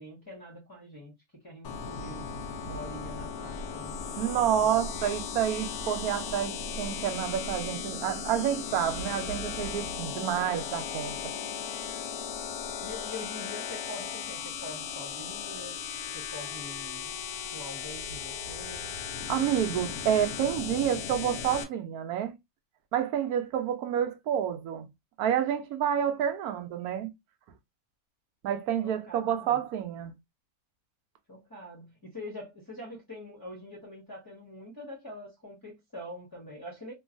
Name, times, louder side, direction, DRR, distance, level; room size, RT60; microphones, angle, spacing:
voice 1, 0.0-2.3 2.6-4.0 12.4-15.8 16.1-17.1 17.5-19.0 28.8-29.6 31.3-36.9, left 1 dB, 20° left, 0.8 m, -44 dB
sound 1, 1.6-21.6, left 6 dB, 85° left, 1.1 m, -36 dB
voice 2, 4.2-11.2 19.3-22.4 22.9-24.9 25.2-27.1 28.4-30.1, right 9 dB, 85° right, 1.1 m, -29 dB
3.1 x 2.2 x 2.4 m
omnidirectional pair, 1.5 m